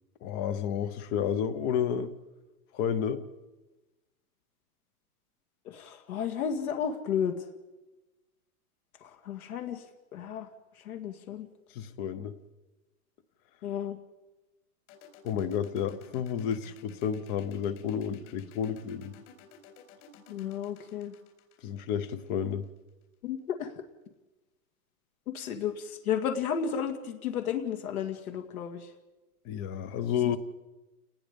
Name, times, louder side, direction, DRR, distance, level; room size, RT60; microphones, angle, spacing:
voice 1, 0.2-2.1 2.7-3.2 11.7-12.3 15.2-19.1 21.6-22.7 29.4-30.4, left 8 dB, 20° left, 15 dB, 0.7 m, -31 dB
voice 2, 5.7-7.5 9.0-9.8 10.1-10.5 10.8-11.5 13.6-14.0 20.3-21.1 23.2-23.8 25.3-28.9 30.2-30.4, left 8 dB, 65° left, 5 dB, 2.3 m, -33 dB
sound 1, 14.9-22.6, left 9 dB, 50° left, 4.6 m, -53 dB
29.5 x 19.0 x 5.2 m, 1.1 s
supercardioid pair, 160°, 46 cm